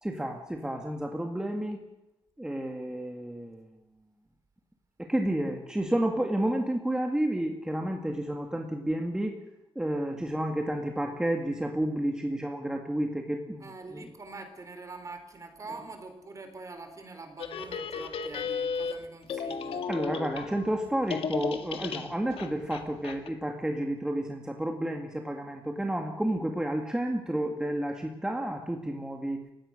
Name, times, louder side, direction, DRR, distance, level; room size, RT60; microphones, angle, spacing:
voice 1, 0.0-1.8 2.4-3.7 5.0-9.4 9.8-14.1 19.9-29.5, right 1 dB, 5° right, 3 dB, 2.0 m, -31 dB
voice 2, 13.6-19.9, right 3 dB, 35° right, 7 dB, 4.0 m, -44 dB
sound 1, 17.4-20.8 21.1-23.3, left 5 dB, 75° left, 2.0 m, -34 dB
29.5 x 17.0 x 6.5 m, 0.90 s
wide cardioid pair, 155°, 10 cm